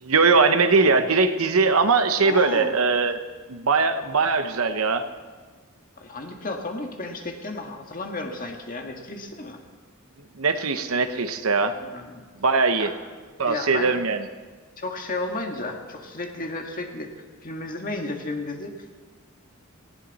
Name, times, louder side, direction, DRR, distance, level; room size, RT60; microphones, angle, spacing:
voice 1, 0.0-3.2 3.5-5.1 10.4-11.7 12.4-12.9 13.4-14.2, right 4 dB, 70° right, 9 dB, 1.0 m, -21 dB
voice 2, 2.2-2.7 6.0-9.6 11.7-12.2 12.8-12.9 13.5-13.9 14.8-17.1 17.4-18.7, left 2 dB, 40° left, 3 dB, 1.8 m, -33 dB
19.0 x 16.5 x 4.2 m, 1.4 s
head